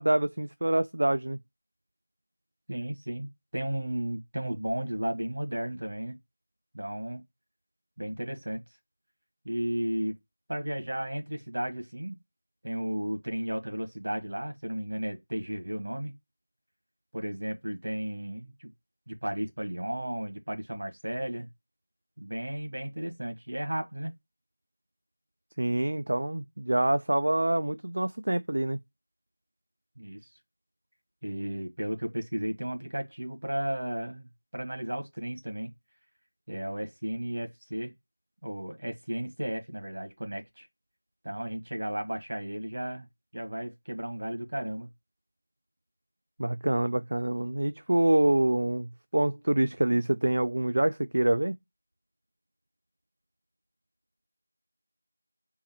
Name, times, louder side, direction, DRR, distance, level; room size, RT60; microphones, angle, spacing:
voice 1, 0.0-1.4 25.6-28.8 46.4-51.5, right 1 dB, 45° right, 0.3 m, -26 dB
voice 2, 2.7-6.2 6.7-7.2 8.0-8.6 9.4-10.2 10.5-12.2 12.6-16.1 17.1-18.7 19.1-21.5 22.2-24.1 30.0-30.3 31.2-35.7 36.5-37.9 38.4-40.7 41.2-43.1 43.3-44.9, right 1 dB, 60° right, 1.4 m, -34 dB
4.3 x 3.6 x 2.9 m
figure-of-eight pair, 180°, 0 cm